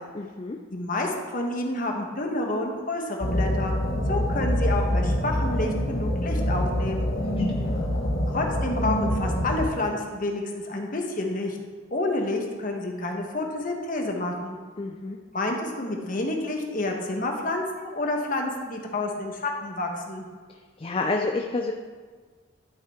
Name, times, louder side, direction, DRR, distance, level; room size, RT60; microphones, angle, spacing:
voice 1, 0.1-0.6 7.5-7.8 14.8-15.2 20.8-21.7, left 3 dB, 25° left, 3 dB, 0.4 m, -29 dB
voice 2, 0.7-3.7 4.1-7.1 8.3-11.6 11.9-14.6 15.3-20.2, left 2 dB, 45° left, 1 dB, 1.2 m, -29 dB
sound 1, 3.2-9.7, equal, 85° left, 1.3 m, -25 dB
12.5 x 5.6 x 3.6 m, 1.5 s
head